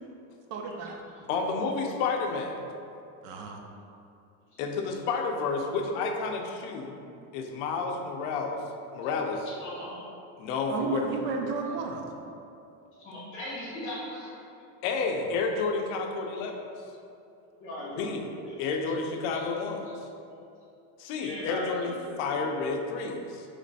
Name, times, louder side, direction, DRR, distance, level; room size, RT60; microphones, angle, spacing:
voice 1, 0.5-1.0 3.2-3.6 10.7-12.0 15.2-15.3, right 4 dB, 55° right, 2 dB, 0.6 m, -32 dB
voice 2, 1.3-2.6 4.6-7.0 7.3-8.6 8.9-9.5 10.4-11.1 14.8-16.6 18.0-18.2 18.6-19.9 21.0-23.5, left 4 dB, 60° left, 3 dB, 0.6 m, -30 dB
voice 3, 9.6-10.0 13.0-14.3 17.6-18.6 21.1-21.9 22.2-22.4, left 1 dB, 30° left, -7 dB, 1.1 m, -38 dB
3.2 x 3.1 x 4.0 m, 2.7 s
cardioid pair, 170°, 42 cm